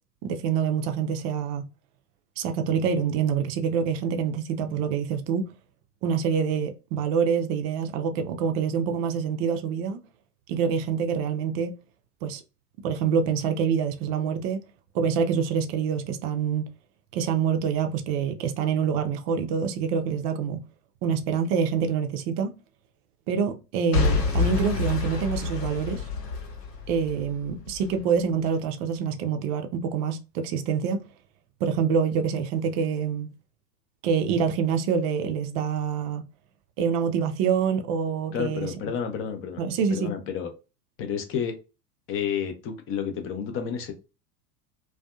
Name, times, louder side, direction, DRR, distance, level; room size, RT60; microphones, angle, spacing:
voice 1, 0.2-1.7 2.4-5.5 6.0-10.0 10.5-11.7 12.2-12.4 12.8-14.6 14.9-16.7 17.1-20.6 21.0-22.5 23.3-26.0 26.9-31.0 31.6-33.3 34.0-36.2 36.8-38.7 39.6-40.1, right 6 dB, 40° right, 0.5 m, -26 dB
Boom / Shatter / Crushing, 23.9-27.9 28.5-28.6, left 4 dB, 75° left, 1.1 m, -27 dB
voice 2, 38.3-39.6 39.9-40.5 41.0-41.6 42.1-43.9, left 7 dB, 25° left, 0.6 m, -30 dB
2.5 x 2.3 x 2.2 m
figure-of-eight pair, 85°, 49 cm